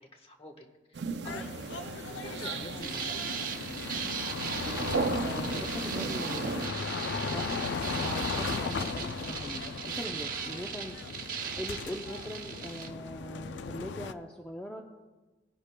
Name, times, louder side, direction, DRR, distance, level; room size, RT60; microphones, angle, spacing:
voice 1, 0.0-1.5 2.2-3.3, left 1 dB, 30° left, 3 dB, 1.1 m, -47 dB
sound 1, 0.9-6.7, right 4 dB, 70° right, 0.5 m, -36 dB
sound 2, 1.2-14.1, left 5 dB, 80° left, 0.4 m, -37 dB
sound 3, 2.8-12.9, right 7 dB, 50° right, 1.0 m, -38 dB
voice 2, 5.2-6.8 7.2-7.6 8.0-11.0 11.6-14.8, equal, 5° left, 0 dB, 0.5 m, -41 dB
19.0 x 10.0 x 2.2 m, 1.2 s
head